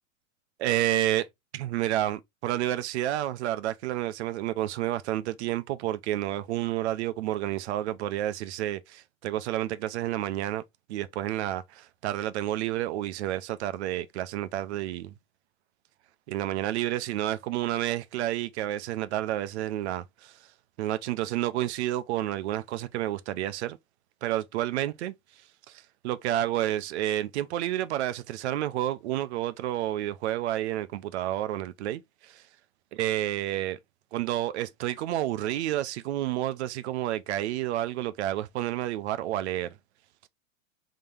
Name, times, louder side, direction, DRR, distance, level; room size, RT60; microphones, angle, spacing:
voice 1, 0.6-1.3 1.5-10.6 10.9-15.1 16.3-20.3 20.8-23.8 24.2-25.1 25.7-32.4 32.9-33.8 34.1-39.7, right 13 dB, 55° right, 0.5 m, -30 dB
3.7 x 2.8 x 3.4 m
supercardioid pair, 160°, 40 cm